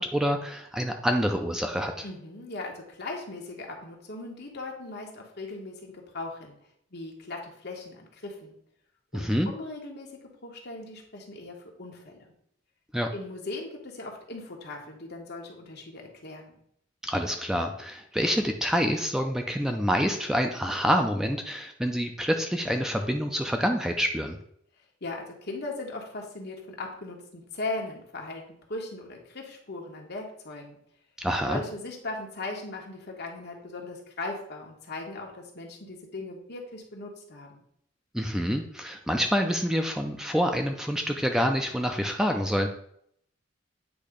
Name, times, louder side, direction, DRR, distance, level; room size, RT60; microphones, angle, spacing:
voice 1, 0.0-2.1 9.1-9.5 12.9-13.1 17.0-24.4 31.2-31.6 38.1-42.7, equal, 5° right, 4 dB, 0.4 m, -27 dB
voice 2, 2.0-6.6 6.9-8.6 9.1-10.1 10.4-12.3 13.1-16.5 25.0-28.4 28.7-30.8 31.5-37.6, left 2 dB, 60° left, 0 dB, 1.4 m, -38 dB
8.5 x 2.8 x 5.0 m, 0.68 s
head